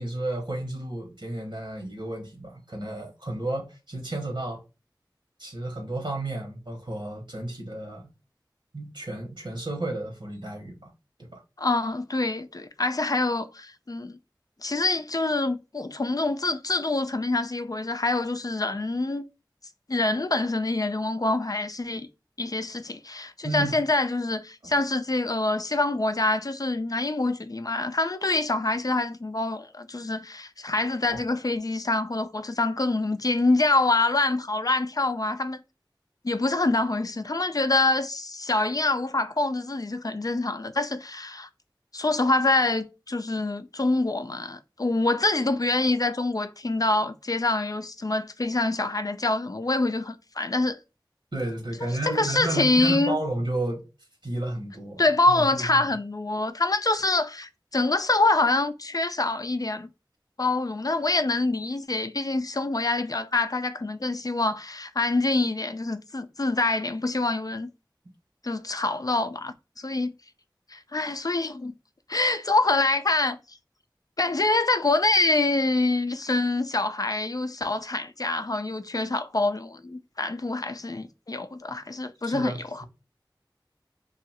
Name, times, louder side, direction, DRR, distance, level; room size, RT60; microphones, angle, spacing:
voice 1, 0.0-4.6 5.4-8.1 8.7-10.9 11.2-11.4 23.4-23.7 24.6-24.7 31.1-31.2 51.3-53.8 54.2-55.0 55.3-55.7 82.2-82.8, right 2 dB, 75° right, 1.0 m, -32 dB
voice 2, 11.6-14.2 14.6-19.2 19.9-22.1 22.4-35.6 36.2-41.5 41.9-50.8 51.8-53.2 55.0-59.9 60.4-67.7 68.4-70.1 70.7-71.7 72.1-73.4 74.2-82.8, left 2 dB, 50° left, 0.4 m, -25 dB
2.6 x 2.4 x 4.0 m
wide cardioid pair, 40°, 8 cm